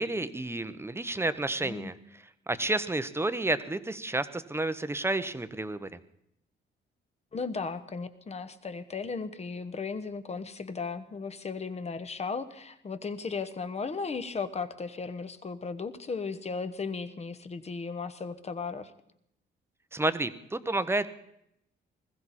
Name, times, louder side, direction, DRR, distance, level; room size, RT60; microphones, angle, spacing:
voice 1, 0.0-1.9 2.5-5.9 19.9-21.1, right 2 dB, 10° right, 12 dB, 0.9 m, -30 dB
voice 2, 1.6-1.9 7.3-18.9, left 4 dB, 35° left, 10 dB, 1.2 m, -36 dB
20.5 x 15.0 x 4.2 m, 0.77 s
cardioid pair, 90°, 20 cm